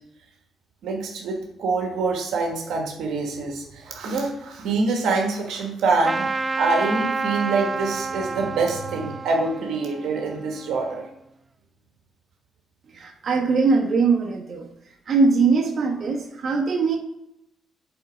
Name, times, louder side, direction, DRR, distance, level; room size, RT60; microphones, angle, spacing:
voice 1, 0.8-6.3 6.6-11.0, right 3 dB, 80° right, 1 dB, 1.4 m, -25 dB
Trumpet, 6.0-11.1, right 4 dB, 25° right, 0.4 m, -30 dB
voice 2, 12.9-14.7 15.1-17.0, right 4 dB, 45° right, -1 dB, 1.5 m, -21 dB
7.8 x 3.8 x 5.1 m, 0.82 s
cardioid pair, 90°, 0 cm